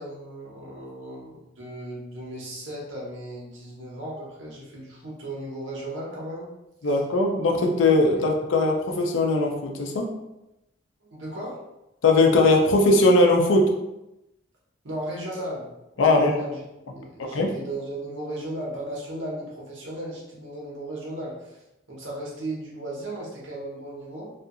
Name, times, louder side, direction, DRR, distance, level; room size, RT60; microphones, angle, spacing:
voice 1, 0.0-6.5 6.8-6.9 8.2-8.3 11.1-11.6 14.8-15.7 16.0-16.6 16.9-21.6 21.9-24.3, right 1 dB, 80° right, -5 dB, 0.9 m, -36 dB
voice 2, 6.8-10.1 12.0-13.7 16.0-16.3 17.2-17.5, left 2 dB, 85° left, 2 dB, 0.5 m, -20 dB
2.7 x 2.4 x 2.4 m, 0.91 s
head